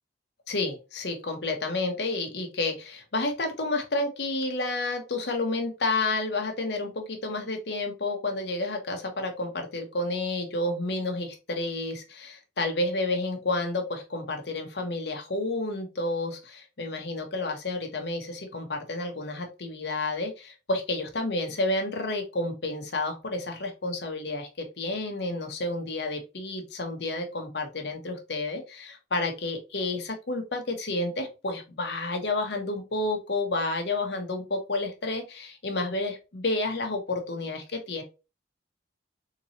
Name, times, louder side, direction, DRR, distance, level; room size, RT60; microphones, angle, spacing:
voice 1, 0.5-38.0, left 2 dB, 70° left, 4 dB, 1.0 m, -30 dB
3.7 x 3.0 x 2.7 m, 0.28 s
head